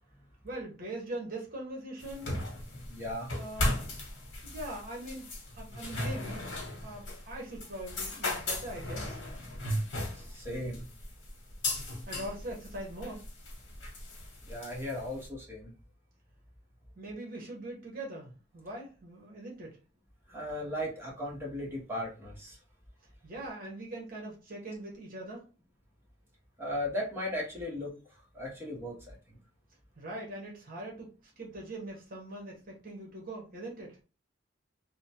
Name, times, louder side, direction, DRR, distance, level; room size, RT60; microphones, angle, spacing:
voice 1, 0.4-2.4 3.3-3.8 4.4-6.4 6.8-9.2 12.1-13.3 17.0-19.8 23.2-25.4 30.0-34.0, right 1 dB, 50° right, -1 dB, 0.9 m, -42 dB
sound 1, 2.0-15.3, left 1 dB, 90° left, 0.9 m, -37 dB
voice 2, 2.9-3.3 10.1-10.9 14.5-15.7 20.3-22.6 26.6-27.9 28.3-29.4, left 1 dB, 15° right, -4 dB, 0.9 m, -37 dB
2.9 x 2.0 x 2.8 m, 0.33 s
head